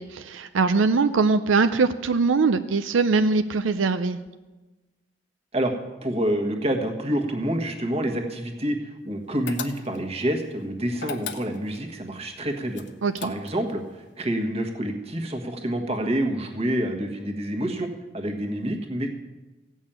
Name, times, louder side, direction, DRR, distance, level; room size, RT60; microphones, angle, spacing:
voice 1, 0.0-4.2 13.0-13.3, right 4 dB, 85° right, 10 dB, 0.5 m, -22 dB
voice 2, 6.0-12.8 13.2-17.9 18.1-19.2, right 1 dB, 30° right, 3 dB, 1.5 m, -27 dB
sound 1, 9.5-10.2 11.0-11.9 12.7-13.7, left 6 dB, 65° left, 1.0 m, -36 dB
15.5 x 6.3 x 8.9 m, 1.2 s
head